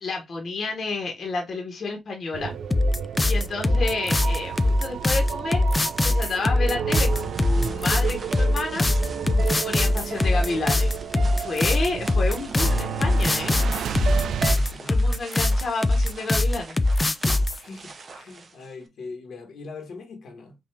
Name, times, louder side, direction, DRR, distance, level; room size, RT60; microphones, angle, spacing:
voice 1, 0.0-2.5 3.2-5.6 6.0-8.9 9.6-10.9 11.3-13.6 14.8-16.8, left 3 dB, 45° left, 1.2 m, -30 dB
sound 1, 2.3-14.5, right 7 dB, 70° right, 0.4 m, -32 dB
sound 2, 2.7-17.6, left 2 dB, 15° left, 0.4 m, -22 dB
sound 3, 6.9-18.9, right 4 dB, 40° right, 0.9 m, -45 dB
voice 2, 14.5-15.2 17.2-20.5, left 3 dB, 70° left, 1.5 m, -41 dB
5.4 x 2.6 x 3.4 m
cardioid pair, 130°, 0 cm